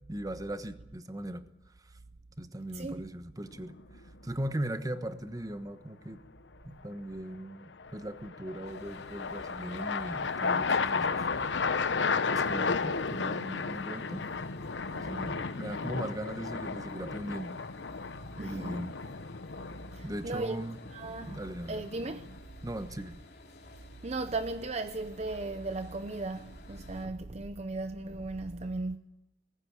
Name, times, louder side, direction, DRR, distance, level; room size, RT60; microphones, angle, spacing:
voice 1, 0.1-1.4 2.4-3.8 4.2-6.2 6.6-11.3 12.3-14.2 14.9-17.5 18.4-19.0 20.0-20.8 21.3-21.8 22.6-23.2, right 1 dB, 20° right, 1.1 m, -38 dB
voice 2, 2.7-3.1 18.4-18.8 19.9-20.6 20.9-21.4 21.7-22.3 24.0-29.0, right 2 dB, 40° right, 0.7 m, -36 dB
sound 1, 3.5-4.0 7.8-22.4, left 4 dB, 85° left, 0.9 m, -34 dB
sound 2, 8.6-27.1, left 2 dB, 60° left, 3.1 m, -53 dB
20.0 x 16.0 x 9.6 m
head